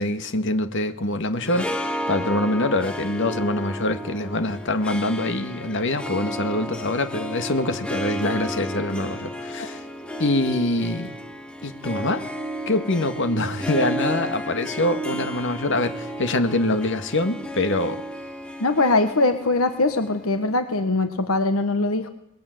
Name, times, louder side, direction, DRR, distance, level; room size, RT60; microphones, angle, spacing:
voice 1, 0.0-9.8 10.2-11.1 11.6-12.2 12.7-18.0, left 2 dB, 60° left, 9 dB, 1.9 m, -24 dB
Harp, 1.3-20.7, equal, 5° left, 2.2 m, -32 dB
voice 2, 18.6-22.1, left 2 dB, 75° left, 9 dB, 1.5 m, -21 dB
21.0 x 21.0 x 9.5 m, 0.73 s
head